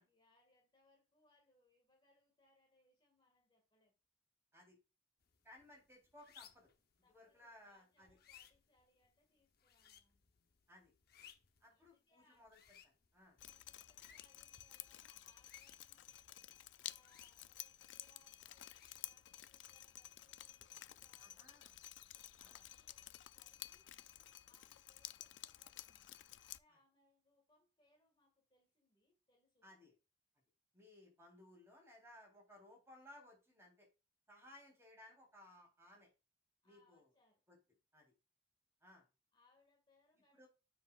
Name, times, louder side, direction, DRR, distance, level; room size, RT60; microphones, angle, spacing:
voice 1, 0.0-4.0 7.0-10.2 11.7-12.5 13.4-16.1 16.8-18.7 19.0-21.7 22.4-22.9 23.3-23.9 24.5-29.7 36.6-37.4 39.3-40.4, left 2 dB, 25° left, 1 dB, 1.9 m, -76 dB
sound 1, 5.2-21.5, left 9 dB, 60° left, 0.7 m, -67 dB
voice 2, 5.4-6.7 7.1-8.2 10.7-10.9 11.6-12.6 12.8-13.4 21.2-21.7 22.4-22.6 29.6-29.9 30.7-33.9 34.3-36.1 36.6-37.1 37.5-37.6 37.9-38.1 38.8-39.0 40.3-40.5, left 1 dB, 15° right, -1 dB, 3.4 m, -61 dB
Drip, 13.4-26.6, left 13 dB, 85° left, 0.4 m, -53 dB
7.3 x 5.9 x 2.4 m, 0.29 s
head